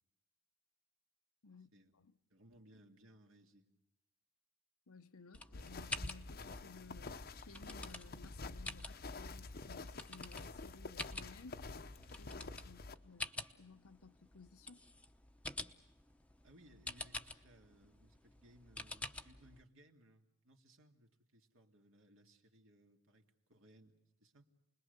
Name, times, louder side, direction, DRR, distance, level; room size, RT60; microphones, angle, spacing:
voice 1, 1.4-2.1 4.9-11.6 12.2-14.8, left 4 dB, 80° left, 1.0 m, -58 dB
voice 2, 2.3-3.7 16.4-23.2 23.5-24.5, right 1 dB, 65° right, 2.4 m, -64 dB
sound 1, 5.3-19.6, left 2 dB, 5° left, 0.9 m, -49 dB
sound 2, 5.5-13.0, left 3 dB, 45° left, 0.8 m, -48 dB
29.0 x 21.5 x 6.7 m
head